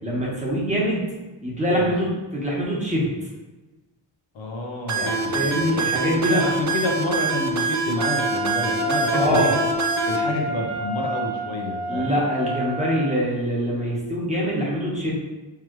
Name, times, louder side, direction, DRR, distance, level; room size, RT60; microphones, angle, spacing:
voice 1, 0.0-1.0 1.4-3.1 4.9-6.5 9.1-9.5 11.9-15.1, equal, 15° right, -5 dB, 1.3 m, -24 dB
voice 2, 4.3-9.5 10.1-12.2, left 1 dB, 75° left, 0 dB, 1.0 m, -29 dB
sound 1, 4.9-10.2, right 3 dB, 40° right, 0.6 m, -24 dB
Wind instrument woodwind instrument, 8.0-13.2, equal, 60° right, 1.0 m, -29 dB
4.7 x 3.5 x 3.1 m, 1.2 s
wide cardioid pair, 115°, 46 cm